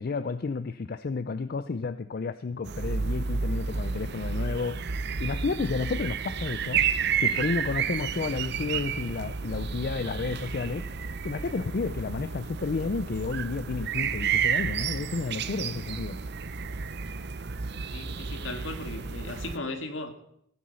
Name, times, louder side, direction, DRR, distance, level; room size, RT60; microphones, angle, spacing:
voice 1, 0.0-4.8 5.2-6.8 7.2-10.9 11.2-16.2, left 4 dB, 50° left, 12 dB, 0.4 m, -31 dB
sound 1, 2.7-19.6, right 6 dB, 60° right, 0.7 m, -31 dB
voice 2, 17.9-20.1, left 2 dB, 75° left, 5 dB, 1.9 m, -36 dB
16.5 x 9.4 x 5.7 m, 0.73 s
head